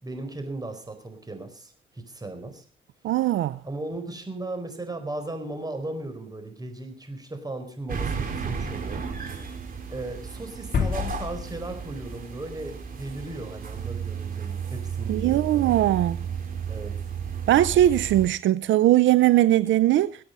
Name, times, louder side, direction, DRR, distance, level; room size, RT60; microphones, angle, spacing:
voice 1, 0.0-2.6 3.6-9.0 9.9-15.8 16.7-16.9, right 2 dB, 20° right, 4.7 m, -36 dB
voice 2, 3.0-3.6 15.1-16.2 17.5-20.2, right 13 dB, 75° right, 0.6 m, -20 dB
sound 1, 7.9-18.3, right 6 dB, 45° right, 4.3 m, -33 dB
sound 2, 10.7-12.6 12.9-13.0, left 6 dB, 50° left, 3.5 m, -30 dB
22.0 x 8.7 x 5.5 m
cardioid pair, 90°, 20 cm